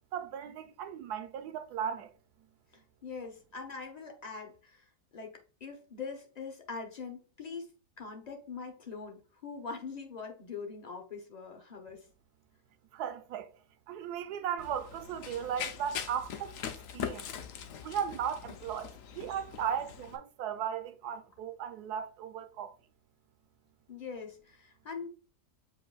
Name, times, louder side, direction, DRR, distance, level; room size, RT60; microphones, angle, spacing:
voice 1, 0.1-2.1 12.9-13.5 13.9-17.3 17.8-22.7, right 8 dB, 75° right, 1.1 m, -36 dB
voice 2, 2.7-4.9 5.1-7.7 8.0-12.1 23.9-25.1, left 5 dB, 45° left, 0.5 m, -43 dB
Run, 14.6-20.2, left 8 dB, 65° left, 0.9 m, -42 dB
7.6 x 2.6 x 2.3 m
omnidirectional pair, 1.7 m